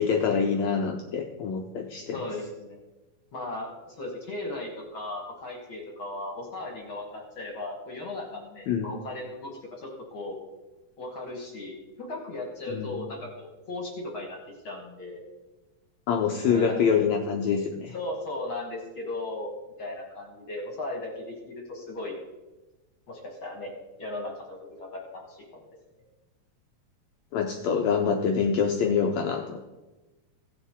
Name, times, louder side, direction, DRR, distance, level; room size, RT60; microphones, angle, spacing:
voice 1, 0.0-2.2 8.7-8.9 12.7-13.0 16.1-17.9 27.3-29.6, left 6 dB, 75° left, 3 dB, 1.7 m, -25 dB
voice 2, 2.1-2.8 3.3-10.4 11.0-14.4 14.6-15.2 16.4-17.1 17.9-19.5 19.8-22.1 23.1-23.7 24.0-25.4, left 2 dB, 50° left, 0 dB, 1.7 m, -37 dB
16.5 x 7.0 x 3.6 m, 1.1 s
omnidirectional pair, 3.8 m